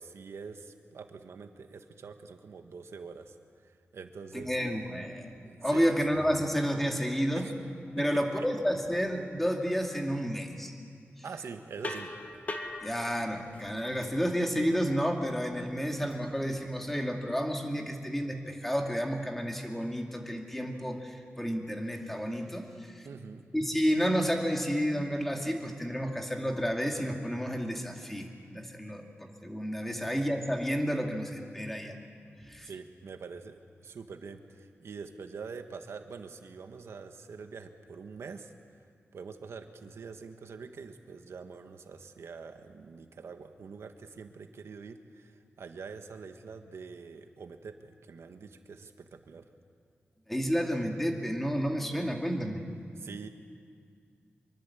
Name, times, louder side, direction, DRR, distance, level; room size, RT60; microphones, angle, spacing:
voice 1, 0.0-3.4 3.6-4.5 5.4-6.0 7.3-7.5 8.0-8.4 11.2-12.1 23.0-23.4 29.9-30.1 32.6-38.5 39.1-49.4 53.0-53.3, right 5 dB, 80° right, 6 dB, 1.6 m, -45 dB
voice 2, 4.3-7.5 7.9-10.7 11.2-11.3 12.8-23.1 23.5-32.0 32.4-32.7 50.3-52.6, equal, 5° left, 2 dB, 2.4 m, -31 dB
sound 1, 11.8-16.9, left 2 dB, 35° left, 1.9 m, -43 dB
25.5 x 23.5 x 8.5 m, 2.2 s
wide cardioid pair, 165°, 4 cm